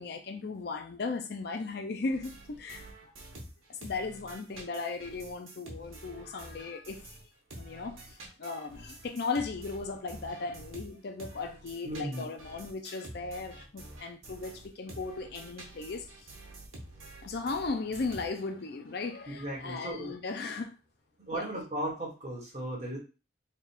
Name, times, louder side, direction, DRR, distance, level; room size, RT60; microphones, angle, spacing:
voice 1, 0.0-3.1 3.7-7.2 7.5-16.3 17.2-20.8 21.3-21.4, left 4 dB, 50° left, 0.5 m, -37 dB
sound 1, 2.1-7.2 7.5-18.6, right 1 dB, 85° right, 1.2 m, -48 dB
voice 2, 11.8-12.3 19.3-20.1 21.2-23.0, right 1 dB, 35° right, 1.4 m, -36 dB
3.4 x 2.4 x 4.3 m
head